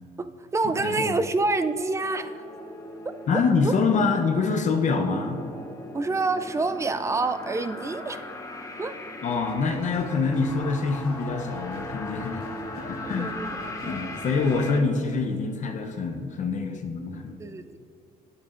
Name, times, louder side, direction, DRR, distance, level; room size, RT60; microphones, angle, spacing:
voice 1, 0.2-2.4 3.6-3.7 5.9-8.3 8.8-9.0 13.0-14.0 17.4-17.8, right 3 dB, 15° right, 10 dB, 0.4 m, -27 dB
voice 2, 0.8-1.2 3.3-5.4 9.2-12.5 12.8-13.3 13.8-17.3, left 4 dB, 45° left, 4 dB, 0.7 m, -25 dB
sound 1, 2.0-14.8, left 1 dB, 20° left, 0.9 m, -39 dB
sound 2, 9.3-14.8, right 2 dB, 75° right, 1.6 m, -48 dB
10.5 x 8.7 x 2.5 m, 2.6 s
cardioid pair, 110°, 17 cm